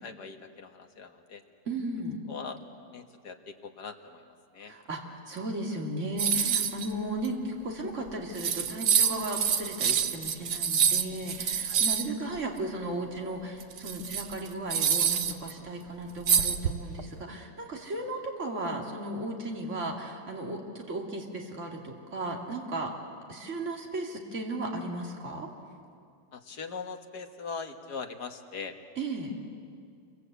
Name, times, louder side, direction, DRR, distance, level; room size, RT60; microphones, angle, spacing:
voice 1, 0.0-1.4 2.3-2.6 2.9-4.7 5.7-5.8 11.7-11.8 17.9-18.0 26.3-28.7, left 5 dB, 75° left, 5 dB, 2.1 m, -41 dB
voice 2, 1.7-2.2 4.6-5.0 5.3-22.9 23.3-25.5 29.0-29.3, right 1 dB, 45° right, 0 dB, 3.0 m, -35 dB
sound 1, 6.2-6.9 7.2-7.3 8.1-8.2 8.3-12.1 13.6-15.5 16.3-17.0, right 7 dB, 80° right, 1.6 m, -26 dB
28.5 x 24.0 x 8.3 m, 2.3 s
omnidirectional pair, 1.7 m